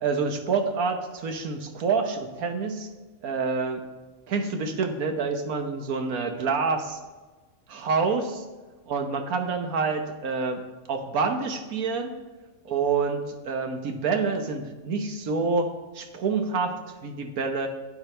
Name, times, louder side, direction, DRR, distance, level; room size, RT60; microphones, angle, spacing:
voice 1, 0.0-2.9 3.2-3.8 4.3-7.0 7.7-8.4 8.9-10.6 10.9-12.1 12.6-16.7 17.0-17.7, right 4 dB, 90° right, 6 dB, 1.5 m, -27 dB
12.0 x 8.7 x 3.3 m, 1.3 s
omnidirectional pair, 1.5 m